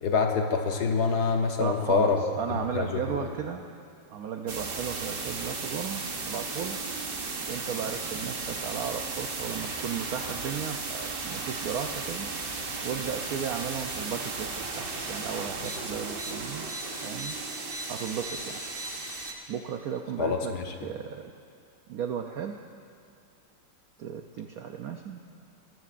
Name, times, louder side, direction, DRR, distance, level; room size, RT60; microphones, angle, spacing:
voice 1, 0.0-2.2 2.7-3.3 20.2-20.7, left 5 dB, 65° left, 4 dB, 1.3 m, -26 dB
voice 2, 1.6-3.6 4.1-6.8 7.5-12.3 12.8-16.7 17.0-17.4 17.9-18.6 19.5-20.5 20.8-21.3 21.9-22.5 24.0-25.2, right 7 dB, 75° right, 4 dB, 0.8 m, -35 dB
sound 1, 4.5-19.3, right 3 dB, 40° right, 0.8 m, -35 dB
20.5 x 14.0 x 2.5 m, 2.4 s
omnidirectional pair, 2.1 m